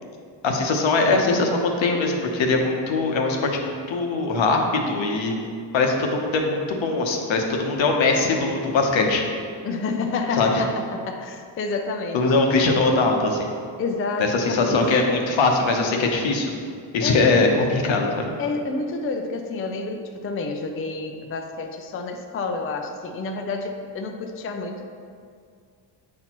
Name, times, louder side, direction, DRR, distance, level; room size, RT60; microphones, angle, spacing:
voice 1, 0.4-5.4 5.7-9.2 10.3-10.6 12.1-13.5 14.2-16.5 16.9-18.3, left 3 dB, 75° left, 2 dB, 0.9 m, -21 dB
voice 2, 9.6-12.3 13.8-15.1 17.0-17.5 18.4-24.9, left 3 dB, 30° left, 4 dB, 0.4 m, -29 dB
8.5 x 4.3 x 2.9 m, 2.2 s
cardioid pair, 110°, 46 cm